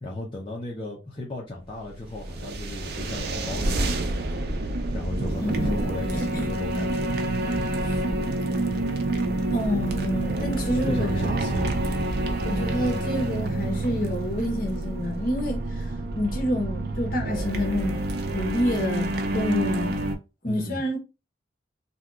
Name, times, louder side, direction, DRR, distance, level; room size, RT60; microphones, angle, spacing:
voice 1, 0.0-3.9 4.9-7.2 10.8-11.7 20.4-20.8, left 2 dB, 25° left, 0.6 m, -35 dB
sound 1, 1.8-20.1, right 2 dB, 55° right, 0.5 m, -28 dB
voice 2, 5.4-5.8 6.1-6.5 7.8-8.0 9.5-11.5 12.4-15.9 16.2-18.0 18.3-20.1 20.4-21.0, left 1 dB, 50° left, 1.0 m, -28 dB
2.7 x 2.3 x 3.6 m
head